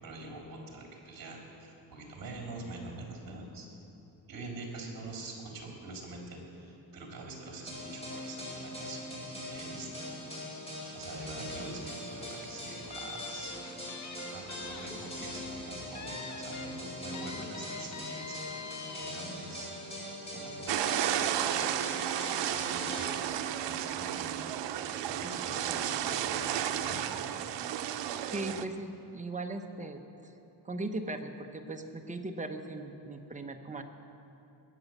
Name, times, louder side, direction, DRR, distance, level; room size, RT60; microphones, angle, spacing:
voice 1, 0.0-3.7 4.3-9.9 10.9-13.6 14.3-18.4 18.9-19.7 20.2-21.0 21.3-22.0 22.4-23.2 23.6-24.5 25.0-27.0, right 2 dB, 50° right, -1 dB, 3.6 m, -45 dB
sound 1, 7.7-23.0, left 1 dB, 15° left, 4.6 m, -42 dB
sound 2, 12.9-14.9 15.2-15.4 16.0-16.7 17.1-19.1, left 5 dB, 40° left, 1.0 m, -44 dB
sound 3, 20.7-28.6, right 10 dB, 80° right, 0.8 m, -33 dB
voice 2, 28.3-30.3 30.6-33.8, right 2 dB, 15° right, 4 dB, 0.9 m, -38 dB
20.5 x 8.0 x 7.3 m, 2.9 s
cardioid pair, 140°, 42 cm